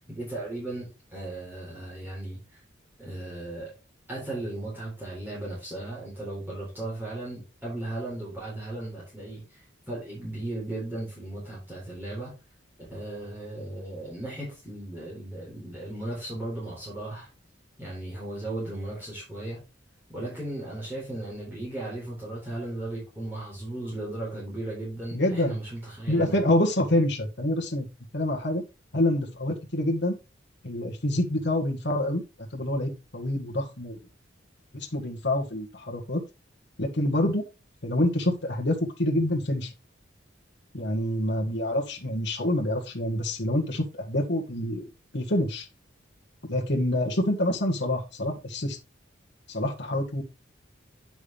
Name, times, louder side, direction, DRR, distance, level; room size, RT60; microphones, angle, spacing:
voice 1, 0.1-2.6 3.0-3.7 4.1-12.3 12.9-17.3 17.8-19.6 20.1-26.4, right 1 dB, 10° right, 4.1 m, -36 dB
voice 2, 25.1-25.6 26.1-27.9 28.1-28.6 28.9-30.2 30.6-32.2 32.5-34.0 34.7-36.2 36.8-37.4 37.8-39.7 40.7-45.7 46.5-48.8 49.5-50.2, left 1 dB, 65° left, 1.6 m, -27 dB
8.7 x 6.1 x 3.5 m
head